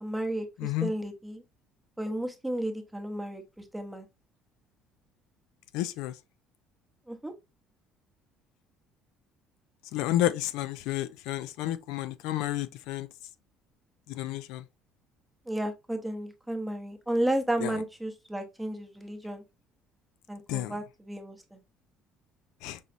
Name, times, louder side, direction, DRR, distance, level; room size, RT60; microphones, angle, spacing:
voice 1, 0.0-1.4 2.0-4.1 7.1-7.3 15.5-19.4 20.3-21.6, right 1 dB, 5° right, 0.7 m, -33 dB
voice 2, 0.6-0.9 5.7-6.1 9.9-13.1 14.1-14.6 17.6-17.7 20.5-20.8 22.6-22.8, left 13 dB, 85° left, 0.4 m, -31 dB
5.4 x 3.0 x 2.5 m
cardioid pair, 150°, 0 cm